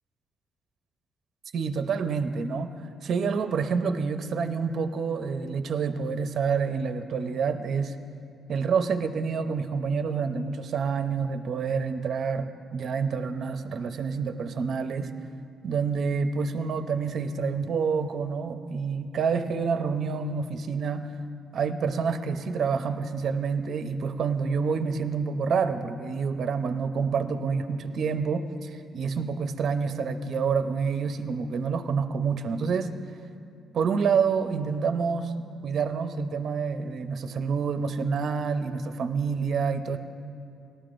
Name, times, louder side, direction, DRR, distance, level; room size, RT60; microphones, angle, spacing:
voice 1, 1.5-2.8 3.0-8.0 8.5-15.1 15.6-21.1 21.5-32.9 33.7-35.3 35.6-40.0, right 5 dB, 60° right, 8 dB, 0.6 m, -28 dB
18.5 x 12.5 x 2.6 m, 2.5 s
cardioid pair, 90°, 0 cm